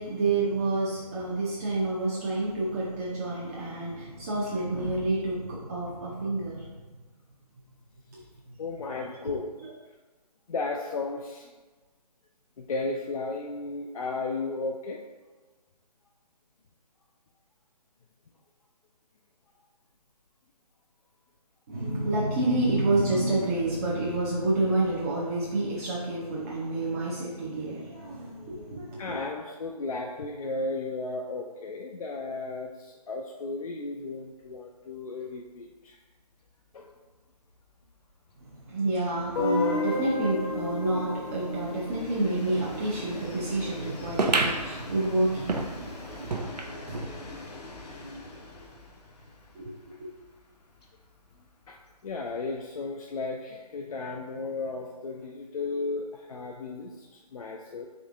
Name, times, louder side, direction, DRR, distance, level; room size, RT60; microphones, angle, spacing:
voice 1, 0.0-6.8 8.1-8.2 8.5-8.6 9.6-9.7 21.7-29.2 38.5-47.5 48.0-48.6 49.5-49.7 50.0-50.1, right 2 dB, 25° right, -6 dB, 0.5 m, -29 dB
voice 2, 8.6-9.5 10.5-11.5 12.6-15.0 29.0-36.0 36.7-36.9 51.7-51.8 52.0-57.9, left 3 dB, 60° left, 0 dB, 0.5 m, -34 dB
Train, 34.4-34.6 34.9-35.0 35.3-52.7, left 2 dB, 75° left, 0.9 m, -46 dB
Guitar, 39.4-44.2, left 2 dB, 40° left, 0.8 m, -32 dB
sound 1, 44.2-47.1 47.6-47.7 47.9-48.0 48.8-48.9, right 3 dB, 75° right, 0.6 m, -30 dB
3.6 x 3.4 x 3.6 m, 1.3 s
figure-of-eight pair, 150°, 21 cm